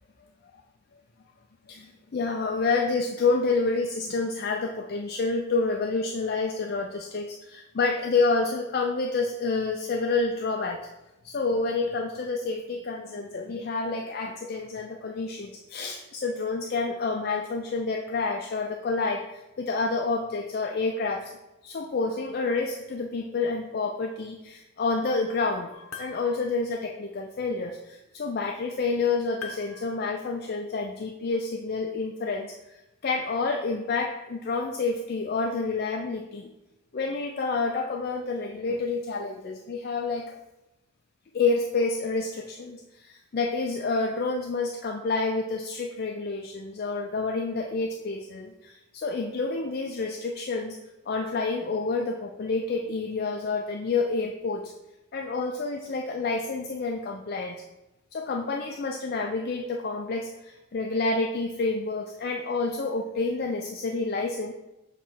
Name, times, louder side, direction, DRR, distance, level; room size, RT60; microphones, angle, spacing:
voice 1, 1.7-10.9 11.2-21.4 21.6-25.7 26.0-36.5 36.9-40.4 41.3-50.8 51.1-54.7 55.1-57.6 58.1-64.5, left 3 dB, 45° left, 3 dB, 0.4 m, -29 dB
sound 1, 25.7-26.7 29.4-30.5, left 4 dB, 80° left, 0.8 m, -43 dB
6.5 x 3.0 x 5.8 m, 0.98 s
head